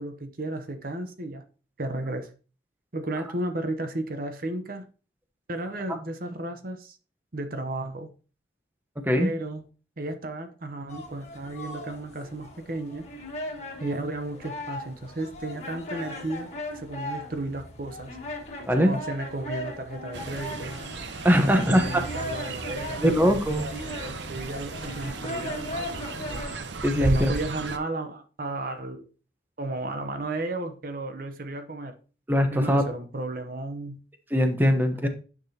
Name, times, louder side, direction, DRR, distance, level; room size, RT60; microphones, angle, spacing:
voice 1, 0.0-1.4 1.8-2.3 2.9-4.9 5.5-7.0 7.3-8.1 9.2-9.6 10.0-13.1 13.8-18.2 18.8-20.8 21.4-23.1 23.6-26.4 27.0-29.1 29.6-31.9 32.5-34.0, right 2 dB, 50° right, 0.8 m, -33 dB
sound 1, 10.9-26.6, left 1 dB, 40° left, 1.7 m, -38 dB
Fowl, 20.1-27.8, right 3 dB, 80° right, 0.8 m, -35 dB
voice 2, 21.2-22.0 23.0-23.7 26.8-27.3 32.3-32.8 34.3-35.1, equal, 10° right, 1.0 m, -21 dB
9.9 x 6.0 x 2.8 m
head